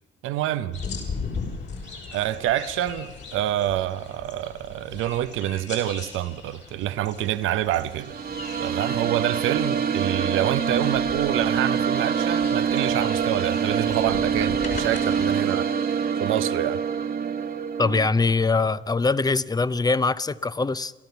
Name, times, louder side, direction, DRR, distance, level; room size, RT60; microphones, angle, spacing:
voice 1, 0.2-0.8 2.1-8.2 8.6-16.8, right 12 dB, 90° right, 0.8 m, -27 dB
sound 1, 0.7-15.3, left 5 dB, 60° left, 5.9 m, -39 dB
sound 2, 7.8-18.1, right 7 dB, 50° right, 1.3 m, -25 dB
voice 2, 17.8-20.9, left 3 dB, 20° left, 0.7 m, -22 dB
30.0 x 13.0 x 7.0 m
cardioid pair, 90°, 20 cm